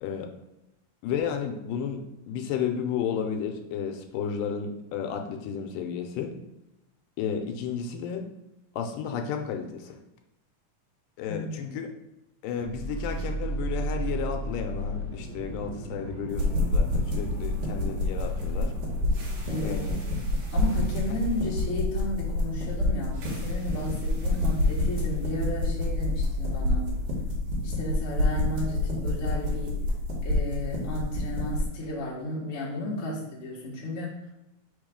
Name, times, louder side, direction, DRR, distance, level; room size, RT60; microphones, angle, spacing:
voice 1, 1.0-2.0 2.3-6.3 7.2-8.3 8.8-10.0 11.2-11.9 12.4-18.7 19.6-20.0, left 7 dB, 80° left, 4 dB, 2.2 m, -32 dB
voice 2, 11.3-11.7 19.5-19.8 20.5-27.0 27.6-29.9 30.2-34.3, left 1 dB, 55° left, -5 dB, 0.8 m, -34 dB
sound 1, 12.6-30.7, equal, 85° right, 1.0 m, -37 dB
sound 2, 16.3-31.7, left 1 dB, 65° right, 2.6 m, -28 dB
5.3 x 3.5 x 5.0 m, 0.91 s
omnidirectional pair, 3.9 m